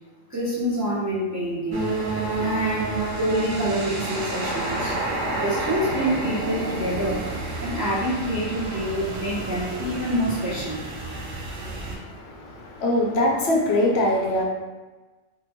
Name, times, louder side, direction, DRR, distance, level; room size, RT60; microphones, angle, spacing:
voice 1, 0.3-1.9 2.4-2.9 3.2-7.2 7.6-10.8, equal, 20° right, -9 dB, 0.4 m, -27 dB
sound 1, 1.7-12.0, right 2 dB, 85° right, 1.1 m, -29 dB
voice 2, 11.9-14.4, left 1 dB, 65° left, -1 dB, 0.8 m, -23 dB
3.6 x 2.1 x 2.9 m, 1.2 s
omnidirectional pair, 1.3 m